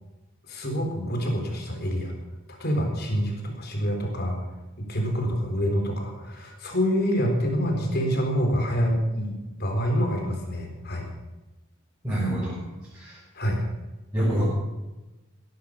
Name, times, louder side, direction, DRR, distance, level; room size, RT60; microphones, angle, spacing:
voice 1, 0.5-2.1 2.6-4.4 4.8-11.1 13.3-13.6, equal, 50° left, 2 dB, 4.2 m, -26 dB
voice 2, 12.0-12.6 12.9-13.2 14.1-14.5, right 1 dB, 15° right, -9 dB, 6.2 m, -26 dB
17.5 x 11.0 x 6.9 m, 1.1 s
head